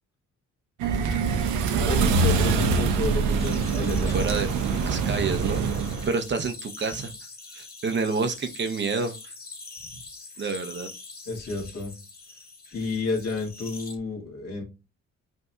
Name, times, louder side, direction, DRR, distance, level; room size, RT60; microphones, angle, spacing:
sound 1, 0.8-6.1, right 4 dB, 80° right, 0.7 m, -24 dB
voice 1, 1.8-4.1 11.3-11.9 12.7-14.6, left 3 dB, 55° left, 0 dB, 1.6 m, -30 dB
sound 2, 3.4-14.0, left 3 dB, 30° left, 1.3 m, -44 dB
voice 2, 4.1-4.5 4.8-5.6 6.0-7.1 7.5-9.3 10.4-10.9, right 4 dB, 40° right, 8 dB, 0.6 m, -28 dB
5.3 x 2.7 x 2.3 m, 0.28 s
cardioid pair, 90°, 30 cm